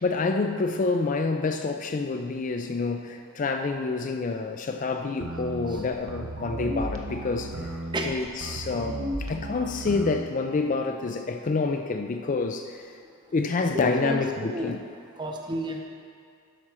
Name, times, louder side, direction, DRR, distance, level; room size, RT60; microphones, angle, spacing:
voice 1, 0.0-7.7 8.0-12.9 13.3-14.8, left 3 dB, 35° left, 6 dB, 0.3 m, -28 dB
sound 1, 5.2-10.2, right 1 dB, 70° right, 0.8 m, -34 dB
voice 2, 13.7-14.2 14.5-14.8 15.2-15.8, right 1 dB, 20° right, 2 dB, 0.7 m, -31 dB
11.5 x 4.3 x 6.1 m, 2.3 s
head